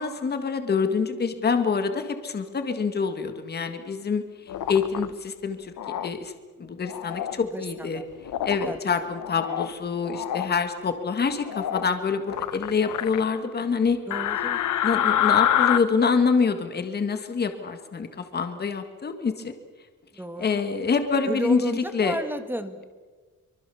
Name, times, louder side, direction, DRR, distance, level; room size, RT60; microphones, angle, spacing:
voice 1, 0.0-4.2 4.7-5.7 6.0-6.3 6.6-8.0 8.4-14.0 14.8-19.5 20.4-22.2, left 5 dB, 30° left, 8 dB, 1.8 m, -26 dB
sound 1, 4.5-5.1 5.8-6.1 6.8-7.4 8.3-8.7 9.1-9.7 10.0-10.5 11.5-11.9 12.3-13.2 14.1-15.8, left 11 dB, 70° left, 1.1 m, -26 dB
voice 2, 7.4-8.1 8.6-9.1 14.1-14.6 20.1-20.7 21.2-22.8, right 1 dB, 5° right, 9 dB, 1.5 m, -33 dB
24.5 x 24.0 x 7.0 m, 1.4 s
wide cardioid pair, 180°, 31 cm